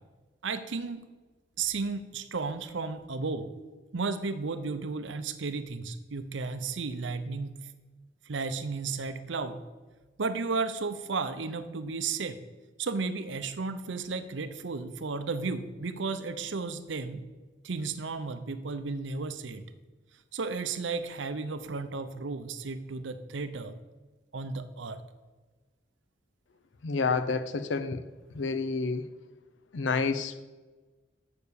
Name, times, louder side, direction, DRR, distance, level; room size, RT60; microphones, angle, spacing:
voice 1, 0.4-1.0 1.6-3.5 3.9-7.5 8.3-9.6 10.2-12.4 12.8-17.3 17.6-19.6 20.3-23.7 24.3-25.0, right 4 dB, 70° right, 10 dB, 0.6 m, -33 dB
voice 2, 26.8-28.0 28.3-29.1 29.7-30.5, left 4 dB, 70° left, 11 dB, 0.6 m, -29 dB
6.8 x 6.6 x 6.9 m, 1.2 s
head